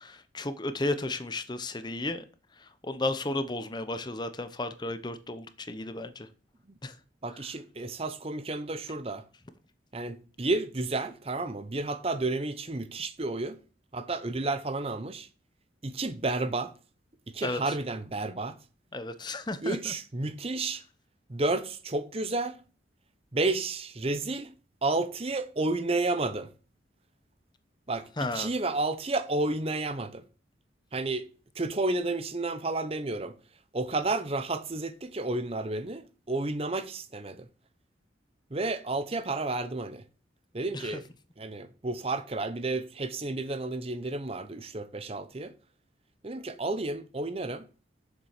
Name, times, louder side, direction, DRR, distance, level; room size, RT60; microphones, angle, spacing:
voice 1, 0.0-2.3 2.6-6.3 6.8-7.0 17.4-17.6 18.9-19.9 28.2-28.5 40.7-40.9, left 2 dB, 25° left, 0.7 m, -33 dB
voice 2, 7.2-9.2 9.9-13.6 13.9-15.3 15.8-16.7 17.3-18.6 19.6-20.8 21.3-22.6 23.3-24.5 24.8-26.5 27.9-30.2 30.9-31.3 31.5-33.3 33.7-37.5 38.5-40.0 40.5-41.0 41.4-45.5 46.2-47.7, right 2 dB, 30° right, 0.7 m, -31 dB
7.3 x 6.8 x 6.6 m
head